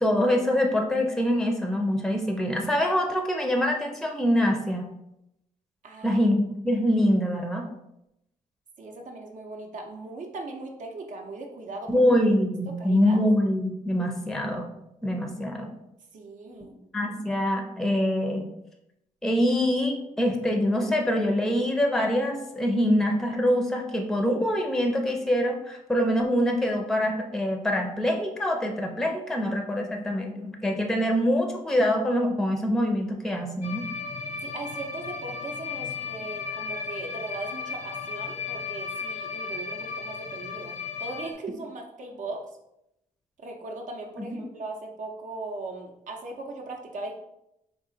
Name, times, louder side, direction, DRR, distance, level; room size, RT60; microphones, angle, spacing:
voice 1, 0.0-4.9 6.0-7.7 11.9-14.7 15.0-15.7 16.9-18.4 19.2-33.8, equal, 5° left, 3 dB, 0.5 m, -24 dB
voice 2, 5.8-6.2 8.8-12.0 12.8-13.2 16.1-16.8 34.4-42.4 43.4-47.2, right 2 dB, 60° right, 2 dB, 0.6 m, -38 dB
sound 1, 33.6-41.3, left 5 dB, 55° left, 0.5 m, -35 dB
3.7 x 2.4 x 3.8 m, 0.83 s
cardioid pair, 115°, 15 cm